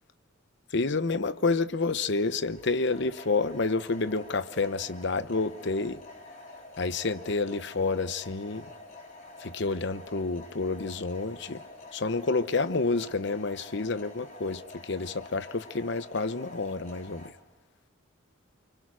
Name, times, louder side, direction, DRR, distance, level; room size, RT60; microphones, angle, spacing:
voice 1, 0.7-6.0 6.8-8.7 9.4-11.6 11.9-17.3, left 3 dB, 60° left, 0.9 m, -29 dB
sound 1, 2.0-17.3, left 2 dB, 40° left, 4.1 m, -48 dB
29.0 x 25.0 x 6.2 m
head